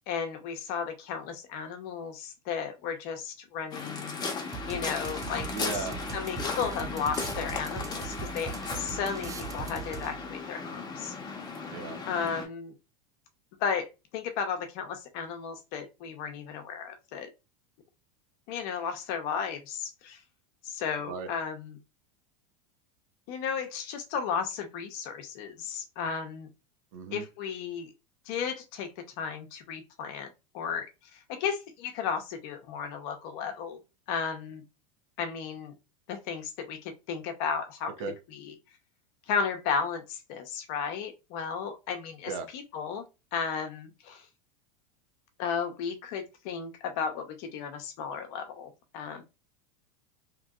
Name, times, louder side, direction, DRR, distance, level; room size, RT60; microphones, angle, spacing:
voice 1, 0.1-4.2 4.7-11.1 12.1-12.7 13.6-13.9 14.1-17.3 18.5-20.2 20.6-21.8 23.3-26.5 27.1-27.9 28.3-30.3 30.5-33.8 34.1-34.6 35.2-35.8 36.1-37.9 38.3-38.5 39.3-43.1 43.3-44.3 45.4-49.2, left 6 dB, 55° left, 0.8 m, -34 dB
Waves surf, 3.7-12.5, left 4 dB, 20° left, 0.9 m, -36 dB
sound 1, 4.5-10.4, right 7 dB, 20° right, 0.4 m, -41 dB
voice 2, 5.5-6.0 11.7-12.0 21.1-21.3 26.9-27.2 38.0-38.1 42.2-42.5, right 5 dB, 70° right, 0.8 m, -36 dB
3.0 x 2.5 x 2.4 m
supercardioid pair, 115°, 18 cm